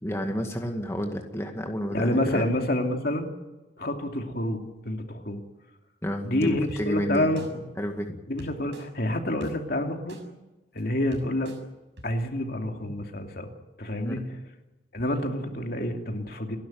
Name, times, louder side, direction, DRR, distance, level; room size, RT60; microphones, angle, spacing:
voice 1, 0.0-2.5 6.0-7.3 7.8-8.2 14.1-14.2, equal, 15° left, 3 dB, 2.0 m, -30 dB
voice 2, 1.9-3.3 3.8-5.4 6.2-7.6 8.3-10.2 10.7-11.5 12.0-13.5 13.8-14.2 14.9-16.6, left 1 dB, 55° left, 3 dB, 2.8 m, -28 dB
sound 1, 6.7-6.8 7.4-7.5 8.4-8.8 9.4-9.5 10.1-10.2 10.8-10.9 11.1-11.6 12.0-12.1, right 1 dB, 85° right, 6.5 m, -43 dB
30.0 x 12.0 x 9.3 m, 1.1 s
head